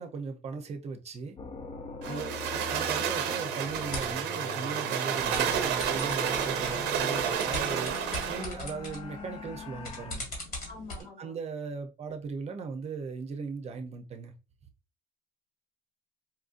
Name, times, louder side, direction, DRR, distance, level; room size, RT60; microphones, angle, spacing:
voice 1, 0.0-1.4 2.1-8.0 8.3-10.3 11.0-14.3, right 4 dB, 40° right, 0.6 m, -38 dB
sound 1, 1.4-10.2, left 4 dB, 35° left, 0.5 m, -42 dB
voice 2, 2.0-2.4 10.7-11.3, left 3 dB, 80° left, 1.4 m, -45 dB
sound 2, 2.0-8.5, right 9 dB, 90° right, 0.6 m, -30 dB
sound 3, 3.6-4.2 5.2-11.0, left 2 dB, 60° left, 1.7 m, -41 dB
4.3 x 2.5 x 2.5 m
cardioid pair, 110°, 17 cm